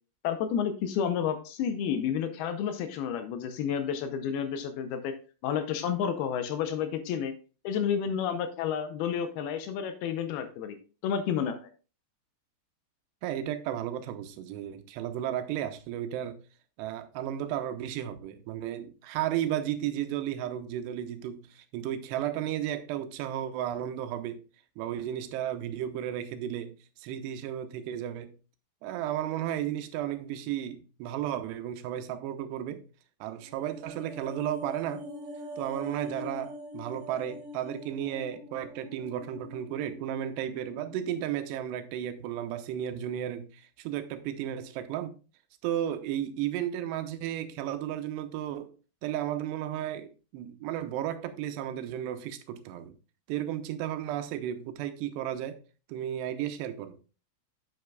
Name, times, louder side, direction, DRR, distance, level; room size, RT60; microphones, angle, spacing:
voice 1, 0.2-5.1 5.4-7.3 7.6-10.8 11.0-11.7, left 8 dB, 80° left, 2.5 m, -30 dB
voice 2, 13.2-16.4 16.8-24.4 24.8-28.3 28.8-32.9 33.2-35.1 35.6-45.2 45.6-48.7 49.0-53.0 53.3-55.6 55.9-57.0, right 11 dB, 85° right, 2.9 m, -34 dB
sound 1, 33.4-41.8 42.1-42.3, left 1 dB, 45° right, 3.6 m, -44 dB
9.3 x 7.9 x 2.3 m
omnidirectional pair, 4.8 m